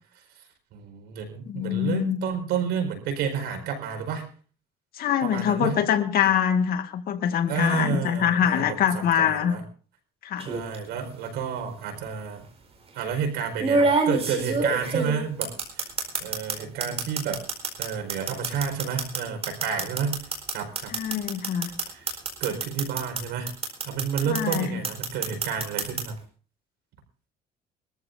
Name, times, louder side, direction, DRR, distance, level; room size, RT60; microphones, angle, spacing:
voice 1, 0.7-4.3 5.2-5.8 7.5-9.6 10.4-12.4 12.9-15.9 16.2-17.4 17.8-20.9 21.8-22.1 22.4-23.5 23.8-26.2, right 6 dB, 85° right, 5 dB, 4.8 m, -30 dB
voice 2, 1.5-2.2 5.0-9.5 10.2-10.5 20.9-21.7 24.2-24.7, left 9 dB, 60° left, 6 dB, 2.0 m, -24 dB
sound 1, 10.4-10.8 12.0-12.1 13.6-16.6 16.8-23.2 23.5-24.6 24.8-26.0, right 4 dB, 35° right, 4.6 m, -26 dB
23.5 x 14.0 x 2.7 m, 0.39 s
cardioid pair, 110°, 17 cm